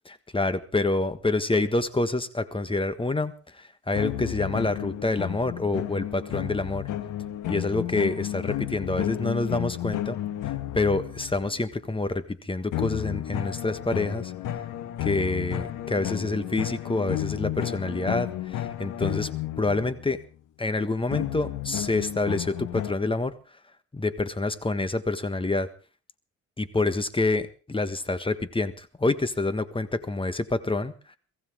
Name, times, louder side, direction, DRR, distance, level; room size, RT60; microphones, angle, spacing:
voice 1, 0.3-6.8 7.5-10.2 10.7-14.3 15.0-19.3 19.6-20.2 20.6-23.3 23.9-25.7 26.6-31.2, left 2 dB, 15° left, 12 dB, 1.5 m, -27 dB
sound 1, 3.9-11.6 12.7-20.2 21.1-22.9, left 13 dB, 85° left, 1.7 m, -32 dB
23.5 x 15.5 x 3.7 m, 0.36 s
cardioid pair, 90°, 30 cm